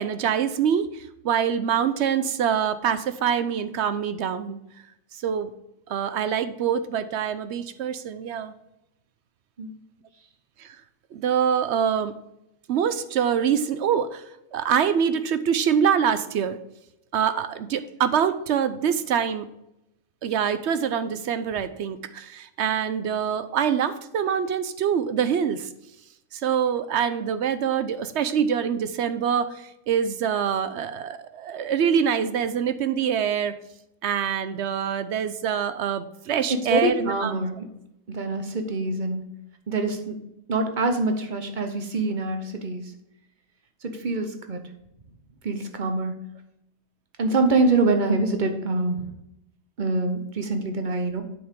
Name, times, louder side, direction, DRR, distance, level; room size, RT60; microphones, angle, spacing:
voice 1, 0.0-4.6 5.2-5.5 5.9-8.5 10.6-10.8 11.1-12.1 12.7-14.2 14.5-16.6 17.1-19.5 20.2-25.7 26.3-33.5 34.0-37.3, right 8 dB, 65° right, 12 dB, 0.8 m, -25 dB
voice 2, 36.7-37.7 38.1-39.3 39.7-40.2 40.5-42.8 43.8-44.6 45.4-46.2 47.2-49.1 49.8-51.2, right 2 dB, 40° right, 6 dB, 1.0 m, -25 dB
8.0 x 6.3 x 3.6 m, 0.85 s
omnidirectional pair, 1.5 m